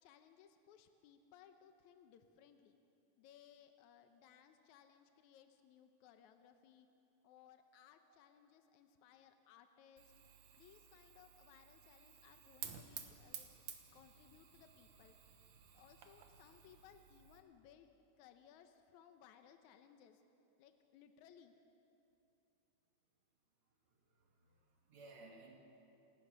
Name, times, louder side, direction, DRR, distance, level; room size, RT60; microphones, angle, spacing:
voice 1, 0.0-2.8 3.2-6.9 7.2-10.1 10.6-13.5 13.9-15.2 15.7-17.9 18.2-20.2 20.6-21.5, left 9 dB, 80° left, 7 dB, 2.2 m, -64 dB
voice 2, 7.7-8.2 24.1-25.6, right 2 dB, 65° right, 1 dB, 3.0 m, -60 dB
Fire, 10.0-17.4, right 8 dB, 90° right, 2.8 m, -54 dB
28.5 x 16.0 x 6.2 m, 2.8 s
omnidirectional pair, 3.4 m